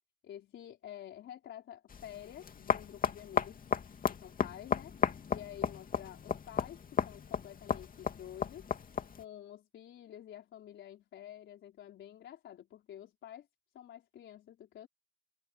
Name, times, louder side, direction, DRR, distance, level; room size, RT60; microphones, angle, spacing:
voice 1, 0.2-3.6 4.1-4.9 5.3-6.8 7.0-8.7 9.1-13.5 13.7-14.9, left 11 dB, 70° left, 4.3 m, -49 dB
sound 1, 1.9-9.2, left 6 dB, 45° left, 2.5 m, -35 dB
cardioid pair, 90°, 20 cm